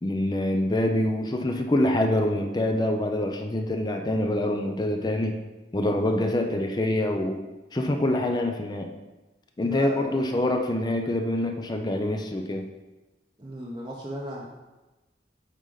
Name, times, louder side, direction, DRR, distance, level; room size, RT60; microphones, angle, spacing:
voice 1, 0.0-5.4 5.7-7.4 7.7-8.9 9.6-12.7, left 1 dB, 20° left, 4 dB, 0.5 m, -25 dB
voice 2, 9.6-10.2 13.4-14.5, right 1 dB, 25° right, -4 dB, 0.7 m, -35 dB
8.1 x 4.0 x 3.9 m, 1.1 s
head